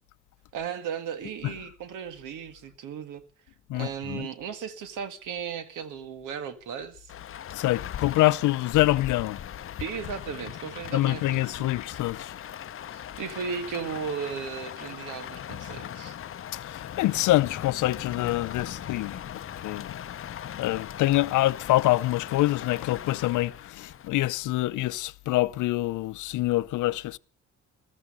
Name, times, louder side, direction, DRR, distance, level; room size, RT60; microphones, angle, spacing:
voice 1, 0.5-3.2 3.7-7.1 9.8-11.7 12.9-16.2, right 7 dB, 85° right, 1.8 m, -36 dB
voice 2, 3.7-4.3 7.5-9.4 10.9-12.3 16.6-27.2, left 17 dB, 85° left, 0.6 m, -26 dB
Rain, 7.1-24.1, left 10 dB, 45° left, 0.7 m, -39 dB
15.5 x 14.0 x 5.4 m
cardioid pair, 90°, 30 cm